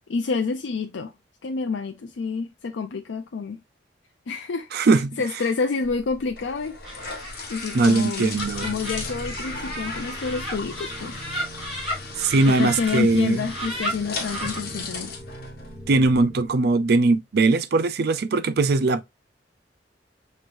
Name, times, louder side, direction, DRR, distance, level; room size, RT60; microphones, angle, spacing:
voice 1, 0.1-1.1 1.4-3.6 4.3-4.7 5.2-6.8 7.5-8.3 8.6-11.2 12.5-15.2, left 4 dB, 90° left, 0.5 m, -28 dB
voice 2, 4.7-5.2 7.7-8.7 12.2-13.4 15.9-19.0, right 3 dB, 60° right, 0.5 m, -20 dB
sound 1, 5.8-16.2, left 3 dB, 60° left, 1.2 m, -37 dB
Laughter, 6.8-13.0 13.4-14.6, equal, 5° right, 3.5 m, -34 dB
sound 2, 8.4-16.5, right 1 dB, 30° left, 1.5 m, -42 dB
6.1 x 3.1 x 2.5 m
head